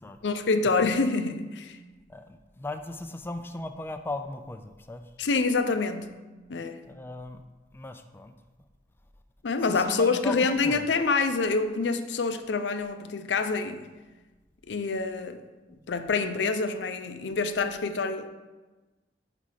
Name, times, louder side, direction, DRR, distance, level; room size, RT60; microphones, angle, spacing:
voice 1, 0.2-1.8 5.2-6.2 6.5-6.8 9.4-13.9 14.7-15.4 15.9-18.3, left 4 dB, 85° left, 9 dB, 0.5 m, -26 dB
voice 2, 2.1-5.0 6.9-7.4 7.7-8.3 9.7-10.4 10.6-10.8, left 2 dB, 10° left, 7 dB, 0.3 m, -37 dB
5.0 x 4.8 x 5.7 m, 1.2 s
head